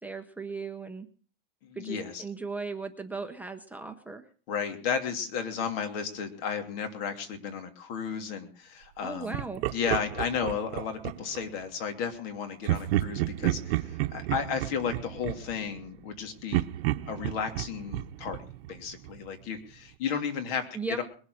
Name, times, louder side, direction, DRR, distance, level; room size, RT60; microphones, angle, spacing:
voice 1, 0.0-1.1 1.7-4.2 9.0-9.6 20.7-21.0, right 4 dB, 5° right, 5 dB, 0.7 m, -37 dB
voice 2, 1.6-2.2 4.5-9.4 9.7-16.6 17.0-18.4 18.7-20.7 21.0-21.1, left 6 dB, 65° left, 7 dB, 2.9 m, -33 dB
Laughter, 9.3-11.5 12.6-16.1 16.5-19.3, right 15 dB, 75° right, 0.8 m, -31 dB
21.0 x 7.3 x 6.3 m, 0.42 s
supercardioid pair, 155°, 31 cm